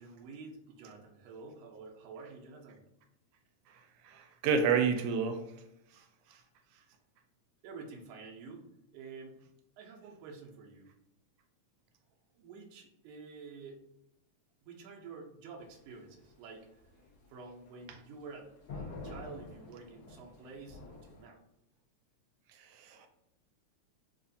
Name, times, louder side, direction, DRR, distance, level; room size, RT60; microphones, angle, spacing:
voice 1, 0.0-2.8 6.8-6.9 7.6-9.4 9.8-10.9 12.4-13.8 14.6-16.7 17.3-21.4, right 4 dB, 75° right, 0 dB, 1.6 m, -49 dB
voice 2, 3.7-5.4 5.9-6.0 6.3-6.4 22.5-23.1, right 6 dB, 90° right, 6 dB, 2.0 m, -31 dB
sound 1, 15.6-21.2, left 3 dB, 60° left, 1.2 m, -48 dB
4.5 x 2.5 x 2.6 m, 0.83 s
omnidirectional pair, 3.4 m